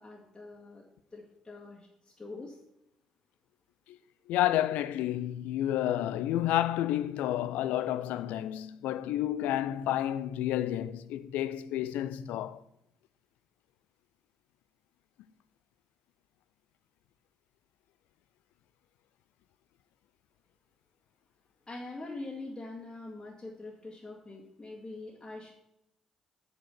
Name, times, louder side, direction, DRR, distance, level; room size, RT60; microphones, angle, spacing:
voice 1, 0.0-2.6 21.7-25.5, left 2 dB, 25° left, 1.9 m, -44 dB
voice 2, 4.3-12.6, left 12 dB, 65° left, 0.4 m, -30 dB
8.8 x 4.6 x 6.6 m
figure-of-eight pair, 40°, 3 cm